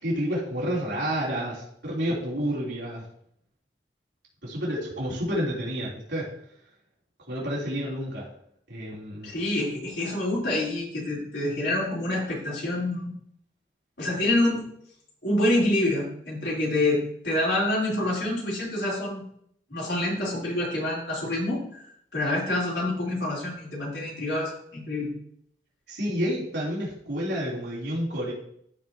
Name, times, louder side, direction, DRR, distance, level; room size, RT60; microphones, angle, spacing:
voice 1, 0.0-3.0 4.4-6.3 7.3-8.3 8.7-9.3 25.9-28.3, equal, 85° right, -6 dB, 3.4 m, -29 dB
voice 2, 9.2-13.1 14.0-14.7 15.2-19.2 19.7-25.1, left 1 dB, 80° left, -5 dB, 3.8 m, -27 dB
14.0 x 5.1 x 2.9 m, 0.68 s
head